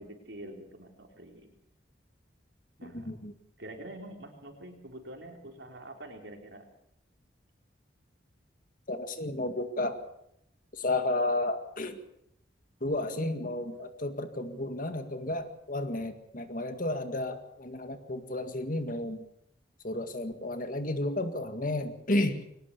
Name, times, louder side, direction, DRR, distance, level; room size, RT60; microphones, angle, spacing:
voice 1, 0.0-1.5 2.8-3.2 3.6-6.7 13.1-13.9, right 1 dB, 70° right, 3 dB, 4.3 m, -46 dB
voice 2, 2.8-3.3 8.9-10.0 10.8-12.0 12.8-19.2 19.8-22.4, left 2 dB, 45° left, 8 dB, 2.0 m, -32 dB
22.5 x 19.0 x 6.9 m, 0.75 s
head